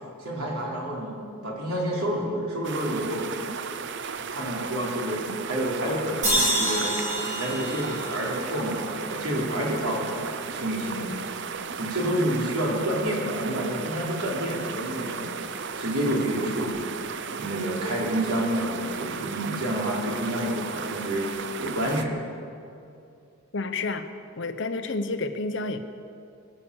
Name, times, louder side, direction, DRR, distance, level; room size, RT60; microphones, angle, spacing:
voice 1, 0.2-3.2 4.3-7.0 7.2-10.2 10.5-11.1 11.8-15.5 15.8-16.8 17.3-21.3 21.6-22.2, equal, 80° right, -3 dB, 3.9 m, -29 dB
sound 1, 2.6-22.1, right 5 dB, 55° right, 0.6 m, -35 dB
sound 2, 6.2-9.5, equal, 35° right, 5.1 m, -28 dB
voice 2, 23.5-24.1 24.4-25.8, left 3 dB, 55° left, 8 dB, 0.9 m, -30 dB
23.5 x 8.6 x 7.2 m, 2.6 s
head